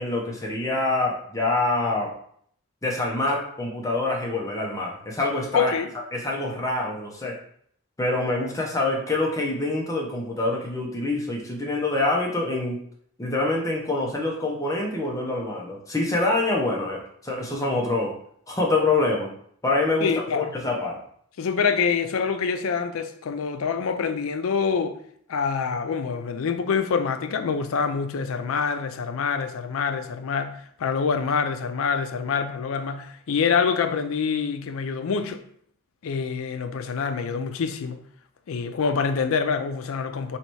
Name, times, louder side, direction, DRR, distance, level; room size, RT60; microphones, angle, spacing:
voice 1, 0.0-2.1 2.8-5.7 6.1-7.4 8.0-12.8 13.2-18.1 18.5-19.3 19.6-21.0, left 2 dB, 15° left, 0.7 m, -25 dB
voice 2, 5.5-5.9 20.0-20.5 21.4-25.0 25.3-35.4 36.0-38.0 38.5-40.4, left 5 dB, 75° left, 0.4 m, -26 dB
3.1 x 2.9 x 4.5 m
head